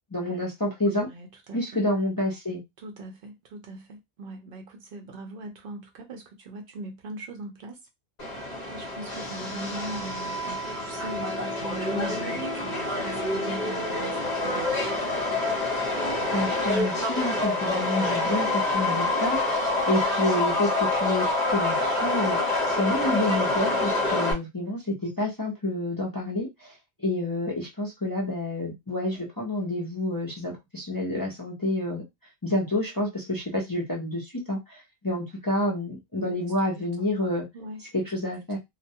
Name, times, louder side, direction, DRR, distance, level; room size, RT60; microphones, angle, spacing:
voice 1, 0.1-1.1 1.5-2.6 16.3-21.3 21.5-26.7 27.0-32.0 32.4-37.4 37.9-38.6, left 1 dB, 25° left, 0.5 m, -29 dB
voice 2, 0.9-1.8 2.8-7.8 8.7-14.7 36.3-36.5 37.0-37.1 37.5-37.8, right 2 dB, 65° right, 0.7 m, -40 dB
Subway metro underground, 8.2-24.3, left 2 dB, 45° left, 0.9 m, -27 dB
2.2 x 2.2 x 2.7 m
omnidirectional pair, 1.1 m